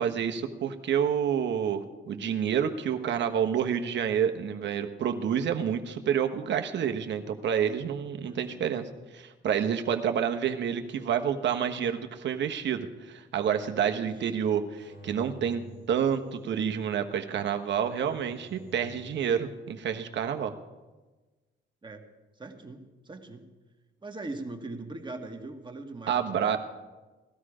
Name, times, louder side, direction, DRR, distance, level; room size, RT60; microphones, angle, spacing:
voice 1, 0.0-8.9 9.1-15.6 15.9-20.5 26.1-26.6, right 8 dB, 65° right, 6 dB, 1.2 m, -28 dB
voice 2, 8.2-8.7 14.0-14.1 21.8-22.0 22.4-23.5 24.0-26.6, right 2 dB, 25° right, 3 dB, 1.8 m, -41 dB
sound 1, 14.8-16.7 17.7-19.2, right 2 dB, 70° left, 3.4 m, -50 dB
18.0 x 12.5 x 5.0 m, 1.2 s
cardioid pair, 90°, 20 cm